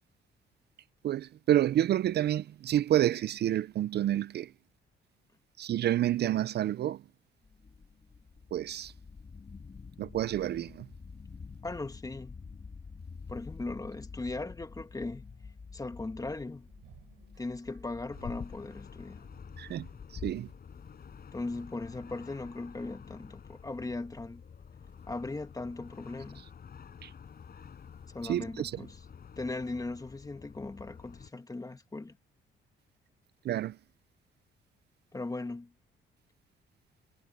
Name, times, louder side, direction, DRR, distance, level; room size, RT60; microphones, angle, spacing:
voice 1, 1.0-4.5 5.6-7.0 8.5-8.9 10.0-10.9 19.6-19.9 20.1-20.5 27.0-27.1 28.2-28.7 33.4-33.7, right 12 dB, 55° right, 0.4 m, -29 dB
sound 1, 7.4-25.3, left 5 dB, 35° left, 2.2 m, -50 dB
voice 2, 11.6-12.4 13.3-15.3 15.7-16.7 17.4-19.3 21.3-24.4 25.1-26.4 28.1-29.0 29.4-32.2 35.1-35.7, left 2 dB, 20° left, 1.7 m, -38 dB
sound 2, 12.6-12.7 13.0-13.2 13.4-19.5, right 14 dB, 90° right, 6.7 m, -63 dB
sound 3, 18.1-31.3, left 7 dB, 50° left, 7.3 m, -49 dB
cardioid pair, 90°, 20 cm